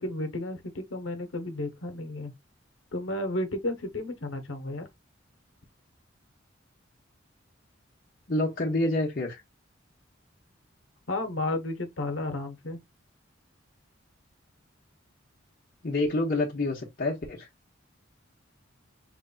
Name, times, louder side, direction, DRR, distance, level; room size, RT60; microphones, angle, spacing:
voice 1, 0.0-2.3 2.9-4.9 11.1-12.8, left 1 dB, 85° left, 1.1 m, -32 dB
voice 2, 8.3-9.4 15.8-17.5, left 2 dB, 50° left, 1.0 m, -27 dB
5.3 x 3.3 x 2.3 m
head